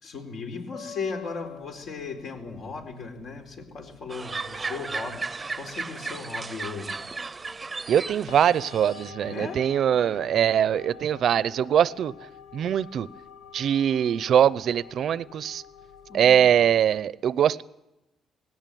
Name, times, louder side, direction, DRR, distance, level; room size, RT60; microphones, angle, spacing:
voice 1, 0.0-7.0 9.2-9.6 9.9-10.3 16.1-16.7, left 4 dB, 70° left, 4.4 m, -37 dB
sound 1, 0.7-17.0, left 7 dB, 85° left, 1.7 m, -48 dB
sound 2, 4.1-9.1, right 4 dB, 25° right, 0.7 m, -35 dB
voice 2, 7.9-12.1 12.5-13.1 13.5-15.6 16.1-17.6, right 9 dB, 65° right, 0.7 m, -22 dB
19.0 x 17.5 x 9.3 m
cardioid pair, 90°, 0 cm